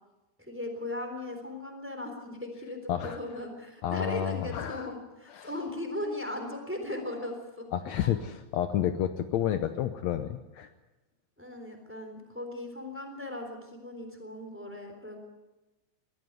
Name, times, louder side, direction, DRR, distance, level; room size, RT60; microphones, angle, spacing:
voice 1, 0.4-7.7 8.0-8.1 11.4-15.2, left 1 dB, 5° right, 4 dB, 3.4 m, -38 dB
voice 2, 3.8-4.9 5.3-5.5 7.7-10.7, left 10 dB, 70° left, 9 dB, 2.0 m, -30 dB
21.0 x 14.0 x 9.6 m, 1.1 s
omnidirectional pair, 3.4 m